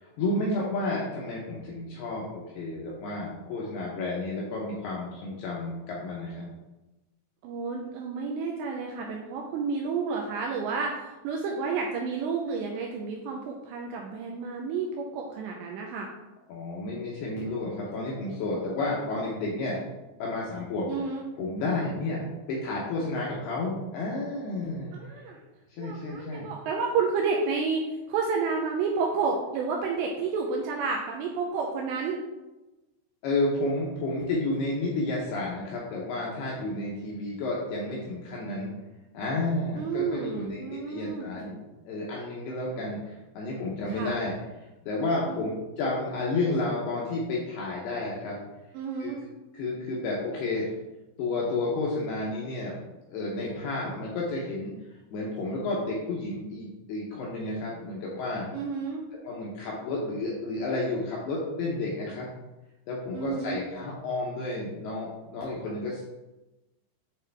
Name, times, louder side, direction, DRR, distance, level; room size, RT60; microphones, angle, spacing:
voice 1, 0.0-6.5 16.5-19.8 20.2-20.9 21.4-22.2 22.5-24.9 25.7-26.5 33.2-38.7 39.1-44.3 44.9-48.4 49.0-49.1 49.5-50.7 51.2-52.8 53.1-54.7 55.1-58.5 59.2-62.3 62.9-66.0, left 2 dB, 80° left, -4 dB, 2.4 m, -31 dB
voice 2, 7.4-16.1 20.9-21.2 24.9-25.4 25.8-32.2 39.7-41.3 43.9-44.2 45.3-45.4 48.7-49.2 58.5-59.1 63.1-63.6, right 5 dB, 85° right, 0 dB, 2.5 m, -30 dB
9.1 x 3.6 x 3.4 m, 1.0 s
omnidirectional pair, 5.6 m